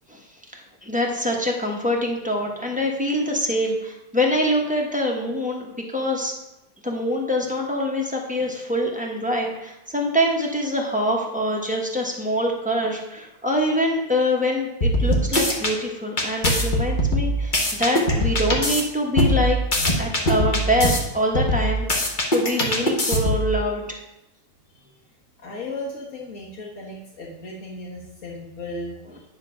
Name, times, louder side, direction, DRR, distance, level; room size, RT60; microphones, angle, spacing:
voice 1, 0.5-6.3 6.8-19.6 20.0-24.0, equal, 5° right, 0 dB, 0.9 m, -24 dB
sound 1, 14.8-15.7 16.2-18.8 19.2-21.0 21.3-23.5, left 1 dB, 30° left, 1.2 m, -21 dB
voice 2, 25.4-29.2, left 2 dB, 50° left, -6 dB, 1.7 m, -36 dB
10.0 x 3.8 x 5.6 m, 0.91 s
omnidirectional pair, 1.8 m